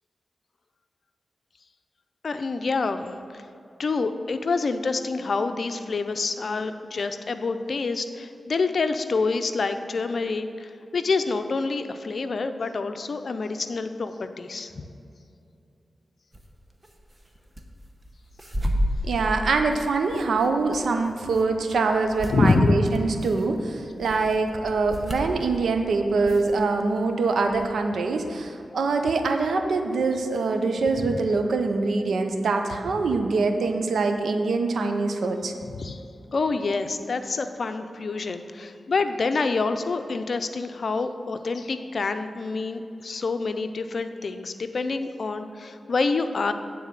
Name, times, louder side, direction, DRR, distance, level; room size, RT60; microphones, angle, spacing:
voice 1, 2.2-3.1 3.3-3.4 3.8-14.8 22.3-22.8 35.7-36.0 36.3-46.5, left 3 dB, 65° left, 9 dB, 0.5 m, -27 dB
sound 1, 16.3-16.5 16.8-17.6 18.0-25.8 26.2-27.0 27.3-27.6, equal, 25° right, 1.0 m, -32 dB
voice 2, 19.0-35.5, right 3 dB, 85° right, 6 dB, 0.7 m, -24 dB
9.4 x 4.1 x 7.4 m, 2.6 s
cardioid pair, 55°, 0 cm